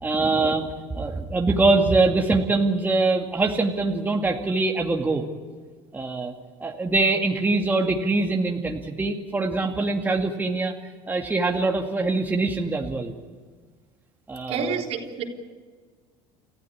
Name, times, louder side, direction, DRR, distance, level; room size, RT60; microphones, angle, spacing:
voice 1, 0.0-0.7 0.9-5.2 5.9-6.3 6.6-10.7 11.1-13.1 14.3-14.8, right 3 dB, 15° right, 2 dB, 2.3 m, -23 dB
voice 2, 14.5-15.2, right 6 dB, 55° right, 2 dB, 3.9 m, -28 dB
30.0 x 15.0 x 8.7 m, 1.5 s
supercardioid pair, 95°, 12 cm